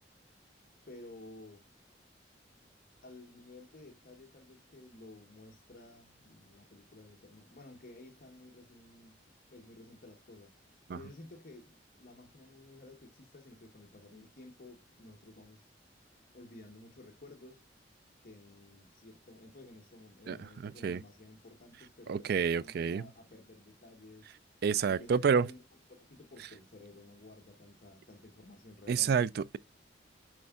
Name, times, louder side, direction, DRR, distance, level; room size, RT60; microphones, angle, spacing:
voice 1, 0.9-1.7 3.0-9.2 9.5-15.7 16.3-17.6 18.2-24.3 24.8-25.6 25.9-29.3, left 2 dB, 50° left, 1.1 m, -54 dB
voice 2, 20.3-21.0 22.1-23.0 24.6-25.5 28.9-29.6, right 6 dB, 60° right, 0.4 m, -29 dB
9.5 x 4.4 x 2.3 m
head